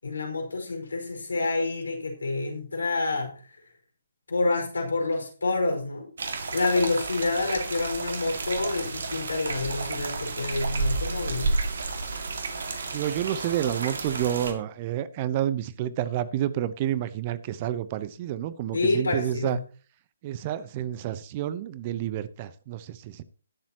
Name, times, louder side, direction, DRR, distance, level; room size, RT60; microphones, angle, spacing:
voice 1, 0.0-3.3 4.3-6.1 6.5-11.5 18.7-19.6, left 3 dB, 75° left, 3 dB, 5.1 m, -28 dB
sound 1, 6.2-14.5, right 3 dB, 60° right, 2.1 m, -31 dB
voice 2, 12.9-19.6 20.2-23.2, right 11 dB, 30° right, 16 dB, 0.8 m, -29 dB
20.5 x 7.3 x 3.0 m, 0.38 s
figure-of-eight pair, 140°, 0 cm